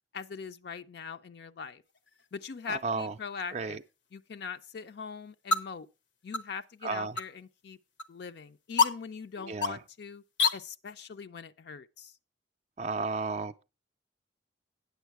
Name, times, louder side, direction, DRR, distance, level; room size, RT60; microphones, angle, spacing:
voice 1, 0.1-1.8 2.3-3.8 4.1-5.9 6.2-7.8 8.1-10.2 10.5-12.1, left 5 dB, 65° left, 0.4 m, -41 dB
sound 1, 1.8-10.5, left 4 dB, 85° left, 0.8 m, -35 dB
voice 2, 2.7-3.1 3.5-3.8 6.8-7.2 9.4-9.8 12.8-13.6, right 4 dB, 35° right, 0.4 m, -33 dB
9.2 x 7.1 x 4.6 m
head